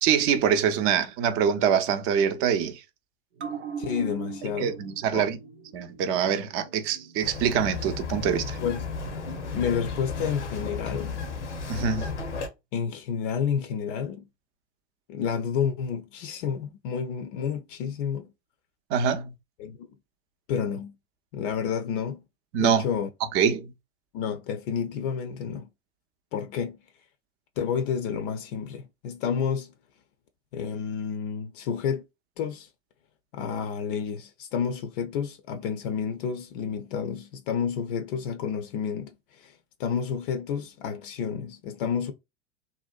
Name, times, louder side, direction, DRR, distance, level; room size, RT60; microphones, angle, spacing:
voice 1, 0.0-2.8 4.6-5.4 5.7-8.6 11.7-12.1 18.9-19.3 22.5-22.9 23.3-23.7, right 8 dB, 40° right, 0.5 m, -24 dB
sound 1, 3.4-10.3 10.6-10.7, right 6 dB, 85° right, 0.5 m, -42 dB
voice 2, 3.8-4.7 5.1-5.3 8.6-8.8 9.5-11.2 12.7-14.2 15.1-18.3 19.6-19.8 20.5-20.9 21.3-22.2 22.6-23.1 24.1-25.7 26.3-26.8 27.6-29.7 30.5-32.0 32.4-32.7 33.3-39.5 39.8-42.1, left 7 dB, 55° left, 0.5 m, -30 dB
Bird vocalization bird call bird song, 7.2-12.5, left 4 dB, 90° left, 0.7 m, -34 dB
2.7 x 2.1 x 2.3 m
hypercardioid pair, 90°, 34 cm